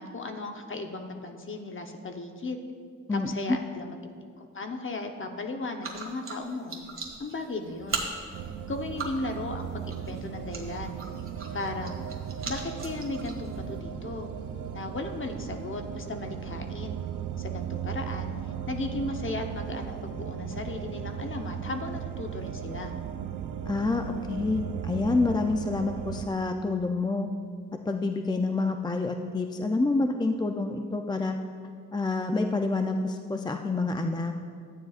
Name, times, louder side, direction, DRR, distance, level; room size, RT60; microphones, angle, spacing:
voice 1, 0.0-2.6 3.1-3.9 4.4-6.8 7.2-8.0 8.7-10.9 11.5-12.0 12.4-14.3 14.7-17.0 17.4-18.3 18.7-22.9, left 2 dB, 40° left, 4 dB, 0.9 m, -36 dB
voice 2, 3.1-3.6 23.7-27.3 27.9-31.4 31.9-34.3, left 3 dB, 15° left, 5 dB, 0.4 m, -28 dB
sound 1, 5.8-13.8, right 4 dB, 45° right, 1.6 m, -40 dB
sound 2, 8.3-26.3, right 9 dB, 80° right, 0.5 m, -37 dB
13.5 x 9.2 x 2.4 m, 2.1 s
wide cardioid pair, 95°, 30 cm